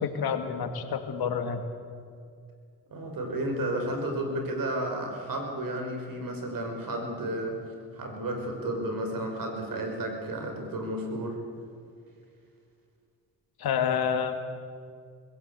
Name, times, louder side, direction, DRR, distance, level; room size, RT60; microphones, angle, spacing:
voice 1, 0.0-1.7 13.6-14.4, left 7 dB, 70° left, 7 dB, 2.2 m, -28 dB
voice 2, 2.9-7.6 7.9-11.4, right 1 dB, 55° right, 4 dB, 5.5 m, -32 dB
22.0 x 16.0 x 8.3 m, 2.2 s
supercardioid pair, 65°, 39 cm